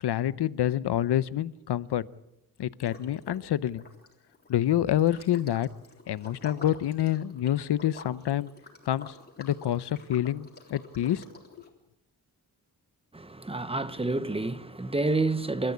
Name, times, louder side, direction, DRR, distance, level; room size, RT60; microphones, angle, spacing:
voice 1, 0.0-2.1 2.6-3.8 4.5-5.7 6.1-8.5 8.9-11.2, left 12 dB, 85° left, 0.8 m, -27 dB
Liquid, 2.8-3.5 3.7-11.7, left 3 dB, 25° left, 3.7 m, -49 dB
voice 2, 13.1-15.7, right 2 dB, 15° right, 0.9 m, -29 dB
28.0 x 13.5 x 8.5 m
wide cardioid pair, 140°, 39 cm